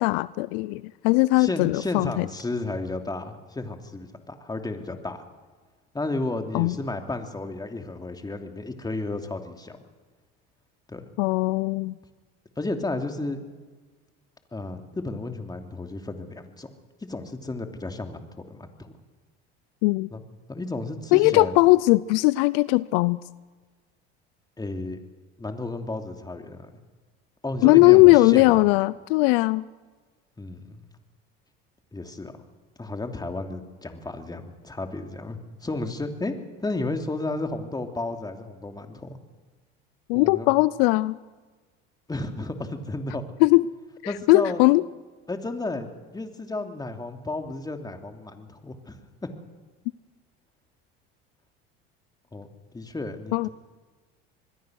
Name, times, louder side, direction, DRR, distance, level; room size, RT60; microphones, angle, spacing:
voice 1, 0.0-2.3 6.5-6.7 11.2-11.9 19.8-20.1 21.1-23.2 27.6-29.6 40.1-41.2 43.4-43.6 44.0-44.8 53.3-53.5, left 21 dB, 75° left, 19 dB, 0.6 m, -19 dB
voice 2, 1.4-5.2 5.9-9.8 10.9-11.0 12.6-13.5 14.5-16.7 17.0-18.9 20.1-20.2 20.5-21.6 24.6-25.0 25.4-26.7 27.4-28.7 30.4-30.8 31.9-32.3 32.8-39.2 40.1-40.5 42.1-43.2 44.1-44.6 45.3-49.3 52.3-52.5 52.7-53.5, left 2 dB, 15° left, 5 dB, 2.9 m, -33 dB
25.5 x 21.0 x 6.4 m, 1.4 s
supercardioid pair, 95°, 30 cm